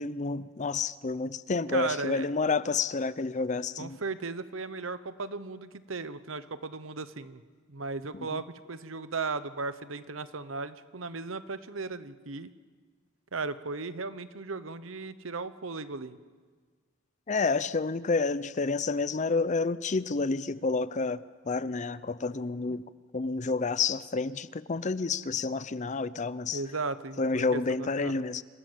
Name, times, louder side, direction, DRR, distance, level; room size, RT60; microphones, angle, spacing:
voice 1, 0.0-4.0 8.1-8.4 17.3-21.2 21.5-22.8 23.1-26.6 27.2-28.4, left 4 dB, 35° left, 16 dB, 0.6 m, -29 dB
voice 2, 1.7-2.3 3.8-7.4 7.7-12.5 13.3-16.2 26.5-28.2, right 4 dB, 85° right, 13 dB, 1.0 m, -36 dB
27.0 x 17.0 x 7.5 m, 1.5 s
head